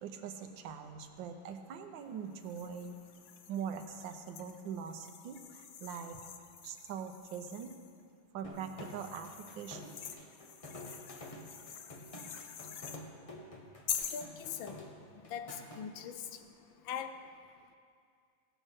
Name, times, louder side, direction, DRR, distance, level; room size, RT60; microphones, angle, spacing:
voice 1, 0.0-2.9 3.5-6.2 6.6-7.7 8.3-9.3 9.6-10.0, right 7 dB, 70° right, 6 dB, 1.5 m, -42 dB
sound 1, 2.4-7.9 8.6-13.0 13.9-14.3, left 8 dB, 90° left, 0.7 m, -46 dB
sound 2, 8.4-15.8, left 1 dB, 25° left, 0.7 m, -49 dB
voice 2, 14.1-14.8 15.3-16.2 16.9-17.1, left 8 dB, 75° left, 9 dB, 1.4 m, -41 dB
16.5 x 6.5 x 6.4 m, 2.3 s
omnidirectional pair, 2.3 m